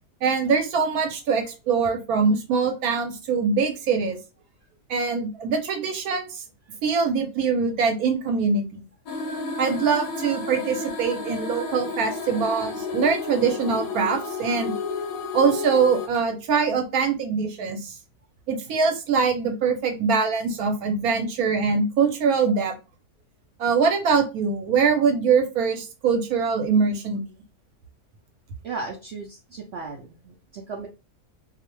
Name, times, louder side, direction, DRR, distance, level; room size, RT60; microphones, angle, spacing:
voice 1, 0.2-4.2 4.9-6.4 6.8-8.8 9.6-14.7 15.3-17.9 18.5-22.7 23.6-27.2, right 5 dB, 70° right, 4 dB, 1.1 m, -23 dB
sound 1, 9.1-16.1, left 3 dB, 70° left, 0.9 m, -31 dB
voice 2, 28.6-30.9, right 4 dB, 90° right, 1 dB, 0.5 m, -36 dB
2.7 x 2.0 x 3.0 m, 0.30 s
omnidirectional pair, 1.7 m